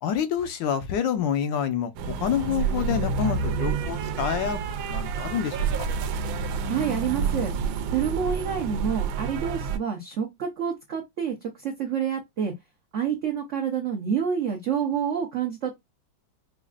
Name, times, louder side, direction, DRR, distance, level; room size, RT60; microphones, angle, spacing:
voice 1, 0.0-5.9, left 8 dB, 75° left, 1.2 m, -28 dB
sound 1, 2.0-9.8, right 5 dB, 85° right, 1.4 m, -28 dB
voice 2, 6.7-7.5 7.9-12.5 12.9-15.7, right 7 dB, 70° right, 0.7 m, -28 dB
5.1 x 2.4 x 2.4 m
omnidirectional pair, 2.1 m